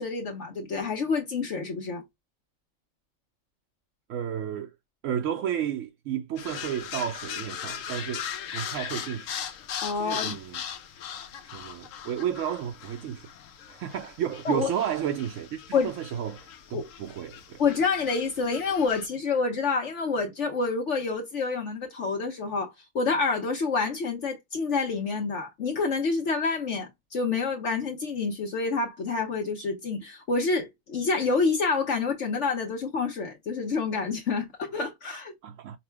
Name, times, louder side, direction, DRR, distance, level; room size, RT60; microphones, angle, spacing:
voice 1, 0.0-2.0 9.8-10.4 14.4-14.7 15.7-15.9 16.7-16.9 17.6-35.3, left 4 dB, 65° left, 1.3 m, -28 dB
voice 2, 4.1-4.7 5.0-9.3 9.9-10.6 11.5-13.3 13.7-17.6 35.4-35.8, right 9 dB, 75° right, 0.9 m, -32 dB
sound 1, 6.4-19.1, left 8 dB, 85° left, 1.1 m, -39 dB
5.5 x 2.1 x 3.4 m
omnidirectional pair, 1.3 m